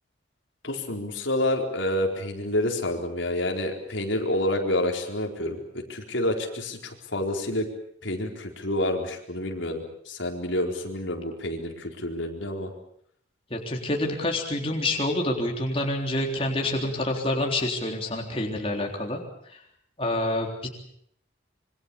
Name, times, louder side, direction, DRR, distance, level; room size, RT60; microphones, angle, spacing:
voice 1, 0.6-5.6 5.9-7.7 8.0-12.7, left 1 dB, 80° left, 2 dB, 4.4 m, -28 dB
voice 2, 13.5-19.2 19.5-19.6 20.0-20.7, left 1 dB, 30° left, 1 dB, 3.7 m, -27 dB
26.0 x 24.0 x 7.1 m, 0.69 s
head